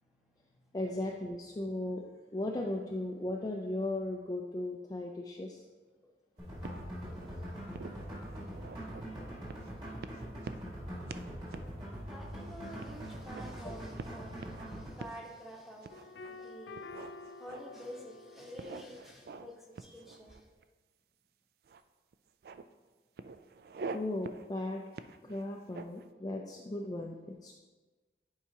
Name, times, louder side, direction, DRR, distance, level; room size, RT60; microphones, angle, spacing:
voice 1, 0.0-0.8 7.2-7.6 8.5-8.6 9.7-9.8 12.1-20.5, equal, ahead, -2 dB, 1.0 m, -50 dB
voice 2, 0.7-2.1 2.3-5.6 23.9-24.8 25.2-27.5, left 1 dB, 20° left, 0 dB, 0.4 m, -36 dB
sound 1, 6.4-14.9, equal, 25° right, 2.1 m, -43 dB
sound 2, 6.6-7.3 7.7-9.1 9.5-9.7 10.0-10.8 11.1-11.3 11.5-11.7 12.1-12.2 12.8-13.5 14.0-14.6 15.0-15.2 15.8-16.3 16.7-17.9 18.6-19.5 19.7-20.6 21.6-21.8 22.1-22.6 23.2-24.0 24.2-24.5 24.9-26.0, right 4 dB, 60° right, 0.3 m, -45 dB
sound 3, 15.9-18.8, left 3 dB, 90° left, 0.4 m, -49 dB
10.0 x 4.8 x 2.8 m, 1.3 s
head